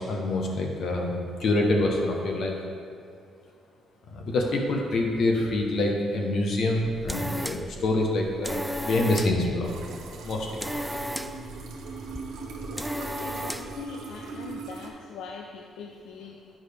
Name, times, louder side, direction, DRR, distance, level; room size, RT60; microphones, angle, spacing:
voice 1, 0.1-1.1 1.4-2.5 4.1-9.7 10.2-10.5, left 2 dB, 65° left, 1 dB, 1.2 m, -26 dB
sound 1, 6.7-13.9, equal, ahead, 0.3 m, -36 dB
sound 2, 9.6-14.9, right 4 dB, 85° right, 0.9 m, -40 dB
voice 2, 12.9-16.5, left 6 dB, 90° left, 2 dB, 0.4 m, -42 dB
8.9 x 5.4 x 3.5 m, 2.2 s
cardioid pair, 90°, 0 cm